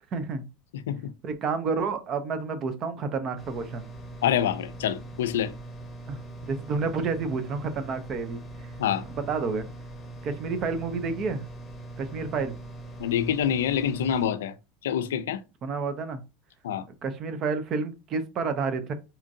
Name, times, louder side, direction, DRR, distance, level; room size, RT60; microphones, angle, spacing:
voice 1, 0.1-0.5 1.2-3.9 6.1-8.7 9.1-9.7 10.2-11.5 12.0-12.6 15.6-16.2 17.0-18.9, right 4 dB, 40° right, 0.6 m, -30 dB
sound 1, 3.4-14.3, right 2 dB, 10° left, 0.9 m, -41 dB
voice 2, 4.2-5.5 8.8-9.0 13.0-14.5 14.8-15.4 16.6-16.8, left 9 dB, 90° left, 0.4 m, -26 dB
4.3 x 2.5 x 2.6 m
supercardioid pair, 115°, 0 cm